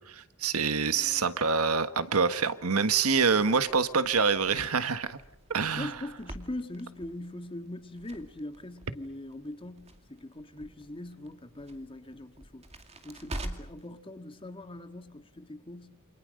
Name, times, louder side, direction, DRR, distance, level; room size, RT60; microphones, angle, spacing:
voice 1, 0.1-5.2 5.5-5.9, right 5 dB, 85° right, 1.5 m, -26 dB
voice 2, 0.9-1.2 3.5-3.6 5.7-12.6 13.0-15.9, left 1 dB, 25° left, 1.8 m, -41 dB
Crackle, 2.9-13.9, right 1 dB, 30° right, 2.4 m, -46 dB
29.0 x 27.0 x 6.5 m
head